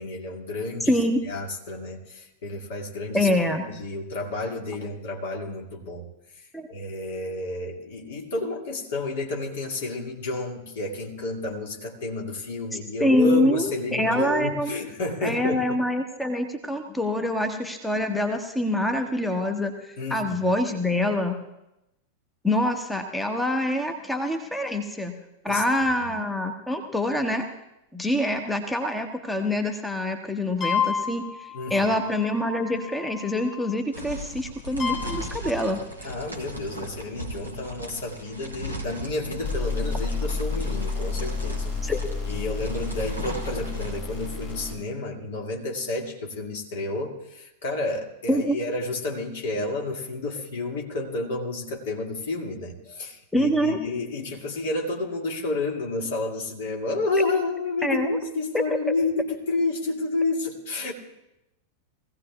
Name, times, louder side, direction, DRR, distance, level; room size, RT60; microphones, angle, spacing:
voice 1, 0.0-1.0 1.2-6.1 6.4-15.6 20.0-20.4 25.5-26.1 31.5-31.9 36.0-41.7 42.3-60.9, left 2 dB, 55° left, 0 dB, 2.2 m, -30 dB
voice 2, 0.9-1.2 3.1-3.6 6.5-6.7 13.0-14.7 15.2-21.4 22.4-25.2 25.4-27.5 27.9-35.8 41.8-42.0 48.3-48.6 53.3-53.8 57.8-58.2 58.5-58.6, left 1 dB, 5° left, 5 dB, 1.0 m, -25 dB
sound 1, 30.6-34.0 34.8-35.2 39.4-44.7, left 5 dB, 35° left, 6.0 m, -31 dB
sound 2, 33.9-44.5, equal, 90° left, 2.3 m, -38 dB
22.0 x 16.0 x 2.4 m, 0.89 s
figure-of-eight pair, 90°, 0 cm